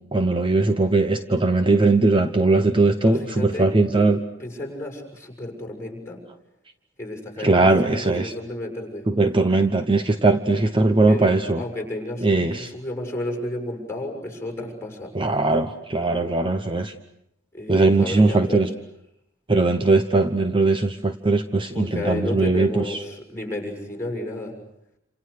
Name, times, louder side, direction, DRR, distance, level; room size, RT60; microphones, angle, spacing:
voice 1, 0.1-4.2 7.4-8.3 9.1-11.6 12.2-12.7 15.1-16.9 17.7-18.7 19.5-23.0, right 3 dB, 25° right, 8 dB, 0.9 m, -20 dB
voice 2, 3.0-3.7 4.0-4.1 4.4-6.2 7.0-9.1 11.1-11.3 11.6-15.1 17.5-18.6 21.7-24.5, left 1 dB, 15° left, 2 dB, 6.9 m, -32 dB
28.5 x 27.5 x 6.7 m, 0.80 s
head